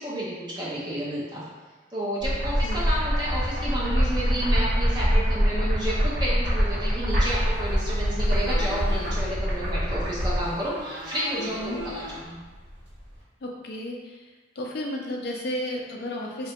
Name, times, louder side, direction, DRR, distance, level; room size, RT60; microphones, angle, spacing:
voice 1, 0.0-1.5 1.9-12.4, right 1 dB, 25° right, -7 dB, 0.4 m, -31 dB
sound 1, 2.2-10.5, equal, 45° right, 0.7 m, -24 dB
sound 2, 7.2-13.2, left 1 dB, 75° right, 0.9 m, -40 dB
voice 2, 11.4-11.8 13.4-14.2 14.6-16.5, left 1 dB, 60° left, 0 dB, 0.4 m, -33 dB
3.2 x 2.2 x 2.8 m, 1.3 s
head